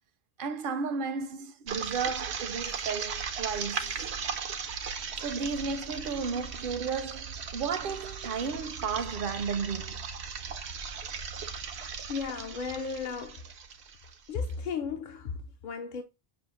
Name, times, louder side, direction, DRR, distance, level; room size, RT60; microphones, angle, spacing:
voice 1, 0.4-4.0 5.2-10.1, right 5 dB, 65° right, 0.7 m, -33 dB
sound 1, 1.7-14.5, right 6 dB, 90° right, 0.9 m, -37 dB
voice 2, 12.1-13.5 14.3-16.0, left 5 dB, 60° left, 0.6 m, -35 dB
6.2 x 2.4 x 2.9 m
omnidirectional pair, 1.1 m